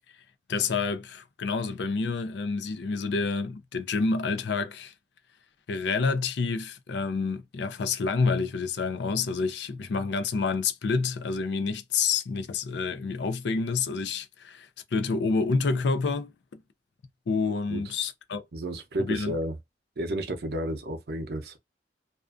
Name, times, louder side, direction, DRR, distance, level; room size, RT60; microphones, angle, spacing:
voice 1, 0.5-4.9 5.7-16.6 17.3-18.4 19.0-19.4, left 4 dB, 80° left, 0.4 m, -28 dB
voice 2, 18.5-19.6 20.0-21.6, right 1 dB, 65° right, 0.6 m, -32 dB
2.4 x 2.3 x 2.3 m
head